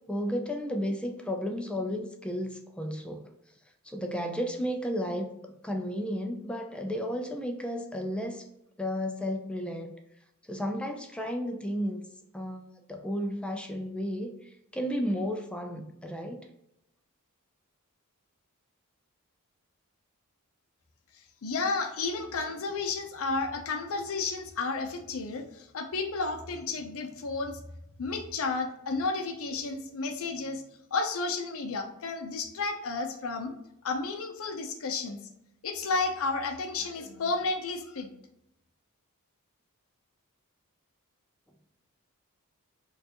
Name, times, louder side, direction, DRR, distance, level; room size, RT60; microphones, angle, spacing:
voice 1, 0.1-3.3 3.8-5.4 5.6-8.5 8.8-9.9 10.4-12.1 12.3-16.5, equal, 5° left, 4 dB, 0.3 m, -33 dB
voice 2, 21.4-27.6 28.0-30.6 30.9-33.5 33.8-35.2 35.6-38.1, left 3 dB, 65° left, 4 dB, 0.6 m, -32 dB
4.5 x 2.4 x 2.8 m, 0.80 s
head